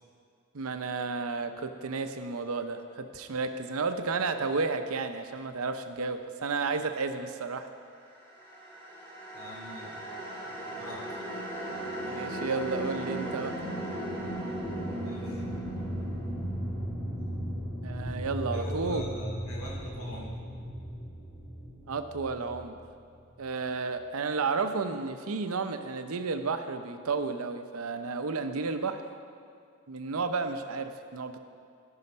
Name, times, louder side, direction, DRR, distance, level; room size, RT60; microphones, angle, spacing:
voice 1, 0.5-7.7 12.1-13.6 17.8-19.0 21.9-22.8 23.4-29.0 29.9-31.4, right 4 dB, 80° right, 8 dB, 0.7 m, -32 dB
sound 1, 8.2-23.4, equal, 10° left, 1.9 m, -36 dB
voice 2, 9.3-10.1 10.4-11.0 14.9-15.4 18.5-20.3, equal, 80° left, -4 dB, 2.5 m, -43 dB
13.5 x 5.6 x 5.5 m, 2.4 s
head